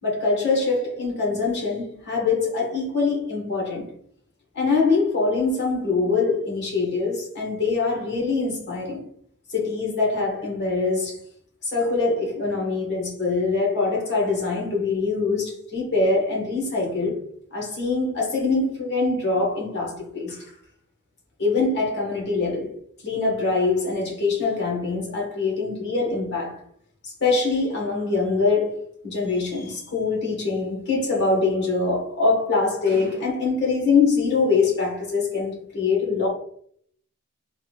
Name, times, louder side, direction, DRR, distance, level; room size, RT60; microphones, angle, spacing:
voice 1, 0.0-3.9 4.5-9.0 9.5-11.2 11.6-17.2 17.5-20.5 21.4-22.7 23.0-26.6 27.2-36.3, left 4 dB, 50° left, 1.5 m, -23 dB
3.6 x 3.4 x 2.4 m
head